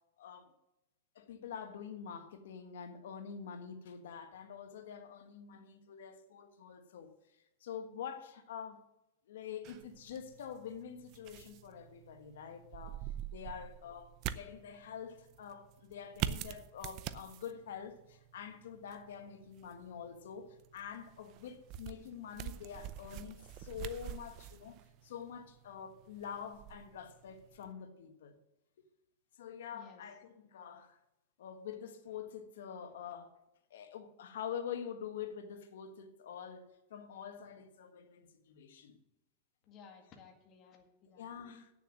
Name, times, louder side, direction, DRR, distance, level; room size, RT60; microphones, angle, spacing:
voice 1, 0.2-0.5 1.1-7.1 7.6-8.8 9.3-28.4 28.8-28.9 29.4-31.0 31.4-33.4 33.7-39.0 41.2-41.7, left 8 dB, 80° left, 1.5 m, -46 dB
sound 1, 9.6-27.7, right 11 dB, 40° right, 0.6 m, -46 dB
voice 2, 29.7-30.0 39.7-41.6, left 6 dB, 30° left, 1.9 m, -57 dB
9.0 x 6.9 x 7.4 m
supercardioid pair, 145°, 0 cm